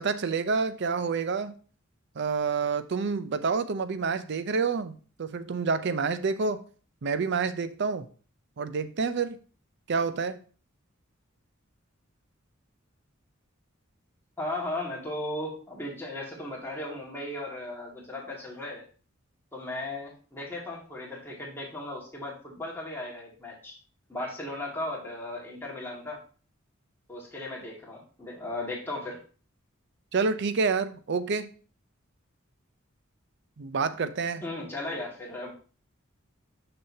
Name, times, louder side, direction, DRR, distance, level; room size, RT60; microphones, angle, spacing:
voice 1, 0.0-1.5 2.2-6.6 7.0-8.1 8.6-9.4 9.9-10.4 30.1-31.5 33.6-34.4, right 5 dB, 60° right, 0.5 m, -28 dB
voice 2, 14.4-18.8 19.5-23.7 24.1-26.2 27.1-29.2 34.4-35.5, left 1 dB, 10° left, 2.0 m, -36 dB
6.4 x 6.1 x 2.7 m
head